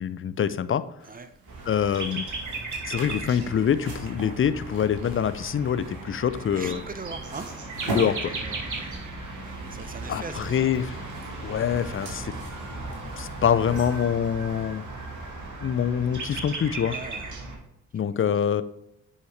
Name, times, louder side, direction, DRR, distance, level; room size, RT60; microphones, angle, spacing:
voice 1, 0.0-0.9 1.7-2.3 2.9-6.8 7.9-8.3 10.1-10.9 11.4-12.3 13.2-14.8 15.6-16.9 17.9-18.6, left 8 dB, 35° left, 14 dB, 0.6 m, -25 dB
voice 2, 1.0-1.3 6.5-7.5 8.3-9.0 9.4-10.8 16.9-17.3 17.9-18.4, right 4 dB, 20° right, 12 dB, 0.8 m, -41 dB
sound 1, 1.0-15.3, right 2 dB, 70° right, 2.0 m, -42 dB
sound 2, 1.5-17.6, right 3 dB, 50° right, 2.2 m, -36 dB
9.6 x 5.5 x 3.3 m, 0.81 s
hypercardioid pair, 40°, 38 cm